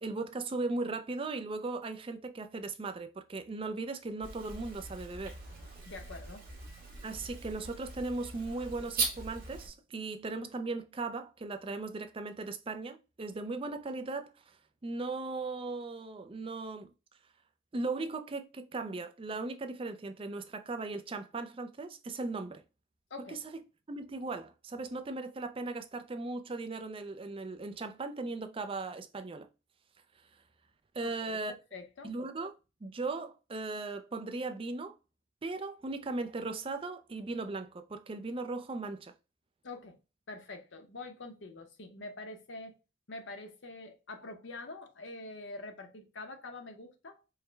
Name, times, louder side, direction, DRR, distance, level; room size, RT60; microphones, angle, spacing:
voice 1, 0.0-5.4 7.0-14.6 14.8-16.9 17.7-22.6 23.3-23.4 23.9-29.5 30.9-31.5 32.0-32.5 32.8-34.9 35.4-39.1, right 3 dB, 25° right, 0.4 m, -38 dB
sound 1, 4.2-9.7, right 4 dB, 45° right, 1.3 m, -40 dB
voice 2, 5.9-6.5 23.1-23.4 31.0-32.1 39.6-40.0 40.3-42.7 43.1-47.3, left 2 dB, 60° left, 0.7 m, -45 dB
4.7 x 2.1 x 3.3 m
head